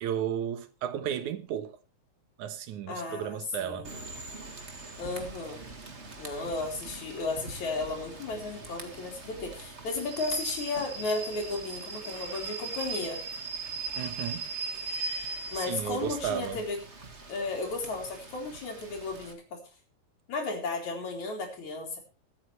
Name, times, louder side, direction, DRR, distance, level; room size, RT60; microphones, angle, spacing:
voice 1, 0.0-1.7 2.4-3.9 14.0-14.5 15.5-16.6, right 9 dB, 80° right, 2.7 m, -33 dB
voice 2, 2.9-3.9 5.0-5.6 6.2-13.2 15.5-16.8 17.3-19.6 20.3-22.0, left 3 dB, 75° left, 5.4 m, -34 dB
Rain / Train, 3.8-19.3, right 3 dB, 25° right, 1.8 m, -40 dB
23.5 x 8.9 x 3.3 m
omnidirectional pair, 3.4 m